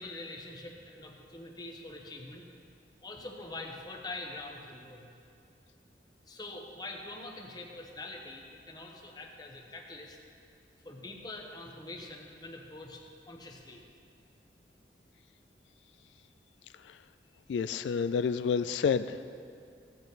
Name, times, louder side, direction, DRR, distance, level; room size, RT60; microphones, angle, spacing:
voice 1, 0.0-2.4 3.0-5.1 6.3-10.2 10.8-13.8, left 2 dB, 25° left, 1 dB, 1.1 m, -44 dB
voice 2, 17.5-19.2, left 6 dB, 85° left, 12 dB, 0.3 m, -29 dB
15.5 x 8.6 x 4.1 m, 2.5 s
head